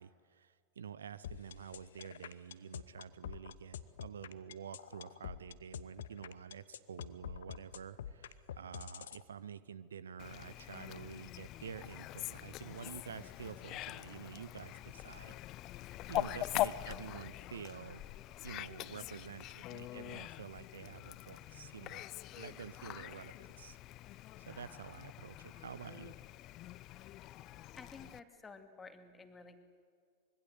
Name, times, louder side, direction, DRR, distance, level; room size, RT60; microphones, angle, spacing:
voice 1, 0.0-15.4 15.7-18.0 18.4-22.1 22.4-23.8 24.0-24.1 24.4-26.2, right 7 dB, 65° right, 17 dB, 0.8 m, -49 dB
sound 1, 1.2-9.2, left 10 dB, 60° left, 1.0 m, -46 dB
Fowl, 10.2-28.2, left 15 dB, 35° left, 0.6 m, -43 dB
voice 2, 27.8-29.6, left 4 dB, 15° left, 7 dB, 2.4 m, -52 dB
25.5 x 22.5 x 8.0 m, 2.2 s
figure-of-eight pair, 90°, 0 cm